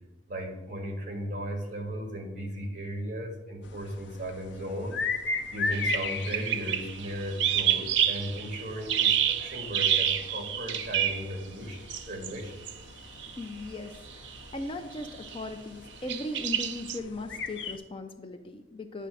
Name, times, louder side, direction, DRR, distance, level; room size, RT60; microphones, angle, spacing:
voice 1, 0.3-5.0 5.5-12.5, equal, 45° right, 2 dB, 1.7 m, -36 dB
sound 1, 3.6-17.8, left 4 dB, 75° left, 0.6 m, -39 dB
sound 2, 5.7-11.3 11.9-12.4 12.7-12.8 13.2-13.4 14.1-14.4 15.0-15.4 16.1-17.0, right 10 dB, 80° right, 0.6 m, -28 dB
voice 2, 13.4-19.1, left 2 dB, 30° left, 7 dB, 0.4 m, -38 dB
9.8 x 3.3 x 6.2 m, 1.0 s
head